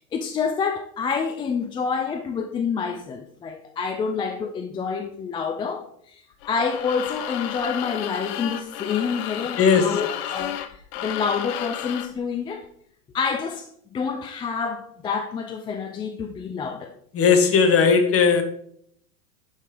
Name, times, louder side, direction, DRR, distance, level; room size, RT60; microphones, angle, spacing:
voice 1, 0.0-10.6 11.0-12.7 13.1-17.0, left 5 dB, 10° left, 6 dB, 0.3 m, -28 dB
sound 1, 6.4-12.2, left 11 dB, 50° left, 0.9 m, -32 dB
voice 2, 9.6-10.0 17.1-18.4, left 6 dB, 30° left, 7 dB, 1.5 m, -17 dB
11.5 x 5.3 x 3.5 m, 0.65 s
hypercardioid pair, 100°, 46 cm